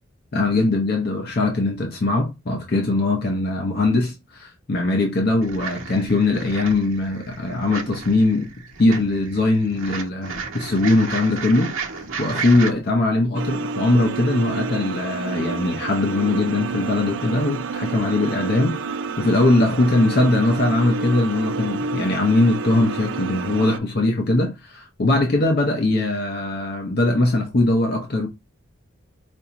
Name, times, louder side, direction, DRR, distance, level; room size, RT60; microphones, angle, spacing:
voice 1, 0.3-8.5 8.8-28.3, left 2 dB, 50° left, 0.6 m, -21 dB
sound 1, 5.4-12.7, right 5 dB, 80° right, 0.9 m, -33 dB
sound 2, 13.3-23.8, right 4 dB, 60° right, 0.4 m, -29 dB
4.5 x 2.6 x 2.9 m
head